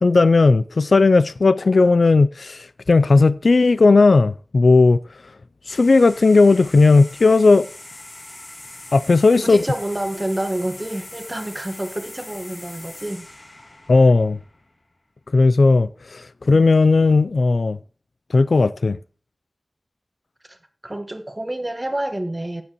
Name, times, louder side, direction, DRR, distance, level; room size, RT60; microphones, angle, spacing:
voice 1, 0.0-5.0 5.7-7.7 8.9-9.6 13.9-14.4 15.3-17.8 18.3-19.0, left 3 dB, 80° left, 0.4 m, -15 dB
sound 1, 5.7-14.8, left 2 dB, 55° left, 2.8 m, -41 dB
voice 2, 9.4-13.3 20.5-20.6 20.8-22.6, right 1 dB, 25° right, 1.3 m, -28 dB
16.5 x 7.0 x 3.0 m
wide cardioid pair, 65°, 0 cm